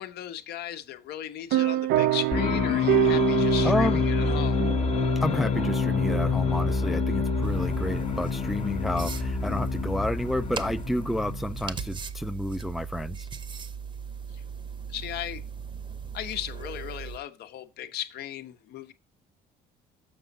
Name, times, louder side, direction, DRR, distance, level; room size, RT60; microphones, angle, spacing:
voice 1, 0.0-4.7 14.3-14.4 14.9-15.4 16.1-18.9, left 11 dB, 75° left, 1.0 m, -36 dB
sound 1, 1.5-9.6, right 15 dB, 90° right, 0.5 m, -28 dB
sound 2, 2.3-11.9, left 6 dB, 40° left, 0.8 m, -27 dB
voice 2, 3.6-4.0 5.2-13.3, left 1 dB, ahead, 0.3 m, -30 dB
sound 3, 7.4-17.2, right 6 dB, 30° right, 0.8 m, -38 dB
7.1 x 5.9 x 4.0 m
cardioid pair, 110°, 17 cm